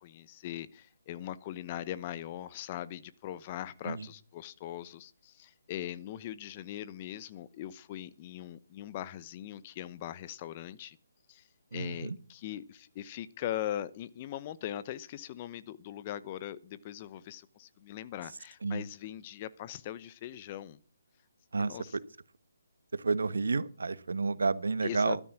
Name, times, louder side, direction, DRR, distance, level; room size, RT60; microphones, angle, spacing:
voice 1, 0.0-11.0 11.3-11.4 11.7-20.8 21.6-22.0 24.8-25.2, left 12 dB, 30° left, 1.0 m, -40 dB
voice 2, 11.7-12.2 18.6-18.8 21.5-22.0 22.9-25.2, right 4 dB, 70° right, 1.2 m, -30 dB
13.0 x 13.0 x 6.0 m
figure-of-eight pair, 145°, 0 cm